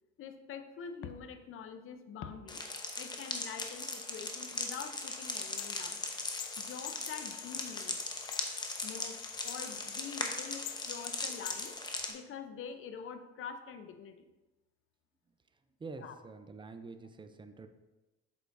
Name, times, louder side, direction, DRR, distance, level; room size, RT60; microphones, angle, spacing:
voice 1, 0.2-2.6 3.0-6.0 6.6-8.0 8.8-11.8 12.1-14.3 16.0-16.1, left 7 dB, 45° left, 8 dB, 0.7 m, -45 dB
sound 1, 2.5-12.1, left 2 dB, 15° left, 0.8 m, -39 dB
sound 2, 5.2-11.7, left 14 dB, 85° left, 0.5 m, -47 dB
voice 2, 15.8-17.7, right 4 dB, 15° right, 9 dB, 0.5 m, -47 dB
8.1 x 6.7 x 2.7 m, 1.1 s
cardioid pair, 120°, 29 cm